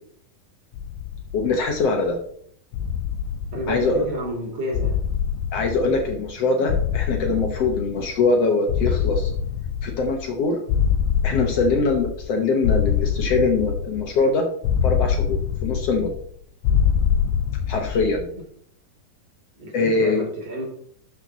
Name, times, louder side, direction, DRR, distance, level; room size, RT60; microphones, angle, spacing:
sound 1, 0.7-2.1 2.7-4.3 4.7-6.4 6.7-8.3 8.7-10.4 10.7-12.3 12.6-14.2 14.6-16.3 16.6-18.3, left 8 dB, 85° left, 2.5 m, -25 dB
voice 1, 1.3-2.2 3.7-4.1 5.5-9.3 9.8-10.6 11.2-14.5 14.8-16.1 17.7-18.3 19.7-20.2, left 3 dB, 65° left, 3 dB, 1.6 m, -22 dB
voice 2, 3.5-4.9 19.6-20.6, equal, 45° right, -2 dB, 4.0 m, -30 dB
12.0 x 6.1 x 4.0 m, 0.64 s
omnidirectional pair, 4.1 m